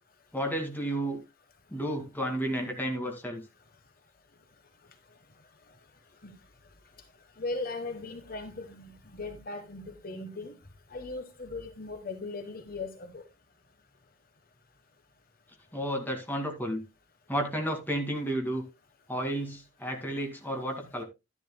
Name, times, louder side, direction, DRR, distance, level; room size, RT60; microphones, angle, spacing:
voice 1, 0.3-1.2 1.7-3.4 15.7-16.8 17.3-18.6 19.1-21.0, right 1 dB, 10° left, 2.2 m, -32 dB
voice 2, 7.4-10.5 10.9-13.2, left 3 dB, 45° left, 1.2 m, -38 dB
11.5 x 11.0 x 2.2 m
head